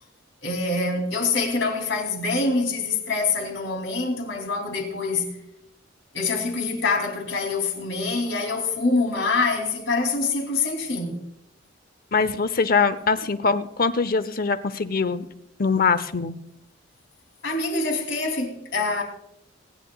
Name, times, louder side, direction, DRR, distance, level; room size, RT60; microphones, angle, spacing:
voice 1, 0.4-5.3 6.1-11.2 17.4-19.0, left 3 dB, 70° left, 3.0 m, -25 dB
voice 2, 12.1-15.3 15.6-16.3, left 5 dB, 50° left, 0.7 m, -22 dB
25.5 x 10.0 x 2.4 m
head